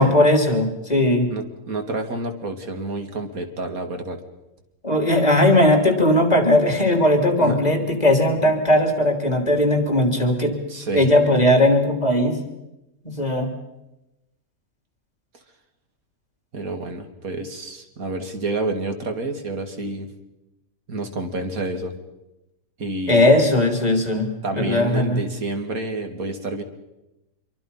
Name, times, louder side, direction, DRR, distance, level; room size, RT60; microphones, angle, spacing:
voice 1, 0.0-1.3 4.8-10.6 10.9-12.4 13.0-13.5 23.1-25.2, left 1 dB, 30° left, 4 dB, 3.4 m, -18 dB
voice 2, 1.3-4.2 7.4-7.6 10.7-11.1 16.5-20.1 20.9-21.9 22.8-23.3 24.4-26.6, right 2 dB, 80° right, 6 dB, 2.6 m, -29 dB
26.0 x 23.5 x 5.6 m, 0.95 s
omnidirectional pair, 1.5 m